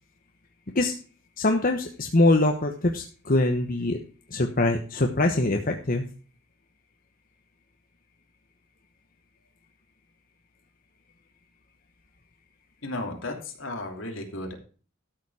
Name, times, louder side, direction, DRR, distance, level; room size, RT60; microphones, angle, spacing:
voice 1, 1.4-4.0 4.3-6.0, left 2 dB, 45° left, 4 dB, 1.1 m, -23 dB
voice 2, 12.8-14.5, left 2 dB, 70° left, 3 dB, 2.9 m, -34 dB
13.0 x 7.2 x 4.8 m, 0.38 s
head